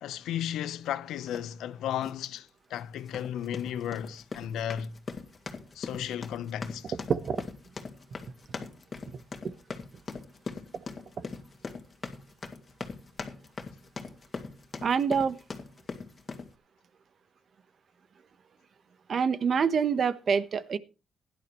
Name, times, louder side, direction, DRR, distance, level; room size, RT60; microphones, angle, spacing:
voice 1, 0.0-4.9 5.7-6.9, left 10 dB, 80° left, 0.9 m, -34 dB
sound 1, 1.3-1.5 2.0-2.3 3.0-16.5, left 4 dB, 35° left, 2.3 m, -41 dB
voice 2, 7.1-7.4 9.4-9.5 10.7-10.8 11.2-11.3 14.8-15.4 19.1-20.8, right 6 dB, 50° right, 1.1 m, -26 dB
16.5 x 11.5 x 3.1 m
cardioid pair, 90°, 0 cm